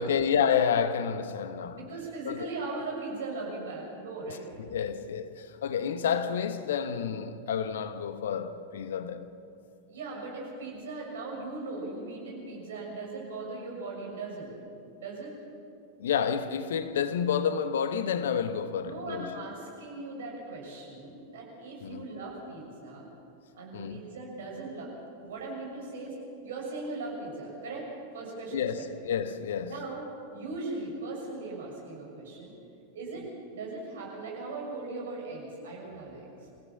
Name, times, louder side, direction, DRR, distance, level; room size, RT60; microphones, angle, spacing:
voice 1, 0.0-1.8 2.2-2.5 4.6-9.3 16.0-19.3 21.8-22.1 23.7-24.0 28.5-29.8, left 7 dB, 60° left, 1.0 m, -29 dB
voice 2, 1.7-4.5 9.9-14.5 15.0-15.3 18.8-23.1 23.6-24.9 25.2-27.9 28.1-28.9 29.6-30.1 30.3-32.6 32.9-33.3 33.5-36.3, right 3 dB, 60° right, 6.8 m, -39 dB
25.0 x 16.0 x 7.4 m
figure-of-eight pair, 90°, 0 cm